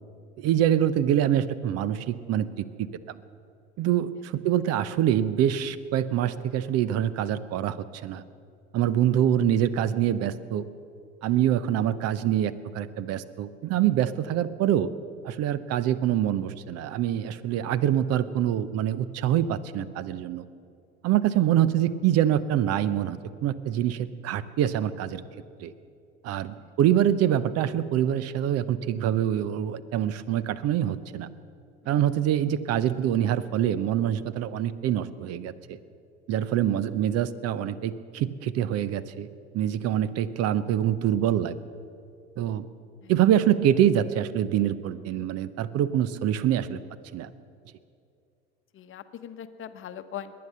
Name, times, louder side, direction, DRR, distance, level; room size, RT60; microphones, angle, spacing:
voice 1, 0.4-3.2 3.8-8.2 8.7-10.7 11.2-14.9 15.2-20.4 21.0-25.2 25.6-25.7 26.2-31.3 31.9-35.8 36.3-39.3 39.5-41.6 42.4-42.7 43.1-46.8 47.1-47.3, right 11 dB, 45° right, 16 dB, 0.8 m, -25 dB
voice 2, 48.7-50.3, left 10 dB, 35° left, 10 dB, 1.0 m, -41 dB
21.0 x 8.7 x 6.7 m, 2.4 s
hypercardioid pair, 75°, 34 cm